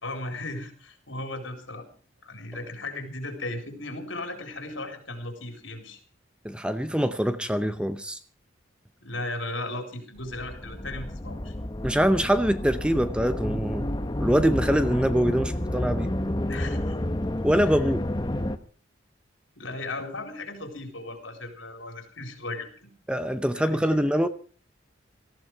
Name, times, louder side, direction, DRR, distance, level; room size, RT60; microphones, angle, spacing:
voice 1, 0.0-1.9 2.2-6.0 9.0-11.5 16.5-16.9 19.6-22.7 23.5-24.0, left 2 dB, 80° left, 4.1 m, -36 dB
voice 2, 6.4-8.2 11.8-13.9 14.2-16.1 17.4-18.1 23.1-24.3, equal, 5° right, 0.7 m, -24 dB
sound 1, 10.2-18.6, left 1 dB, 20° left, 0.9 m, -30 dB
18.5 x 14.5 x 4.8 m
head